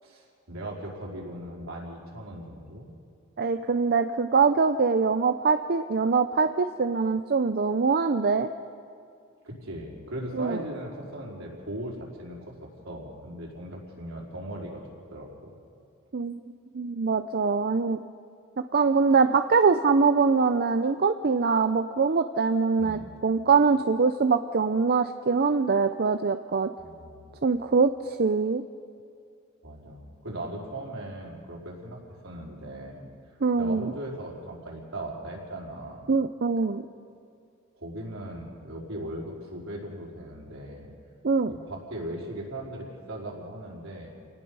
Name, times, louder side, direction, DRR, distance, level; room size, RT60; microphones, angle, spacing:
voice 1, 0.0-2.9 9.4-14.8 15.1-15.5 22.8-23.0 26.8-27.3 29.6-33.1 33.6-36.1 37.7-40.9 41.5-44.1, right 1 dB, 70° right, -3 dB, 4.8 m, -38 dB
voice 2, 3.4-8.5 10.3-10.6 16.1-16.4 16.7-18.0 18.6-26.7 27.4-28.6 33.4-33.9 36.1-36.8 41.2-41.5, right 4 dB, 50° right, 9 dB, 0.6 m, -23 dB
28.5 x 19.0 x 5.6 m, 2.4 s
head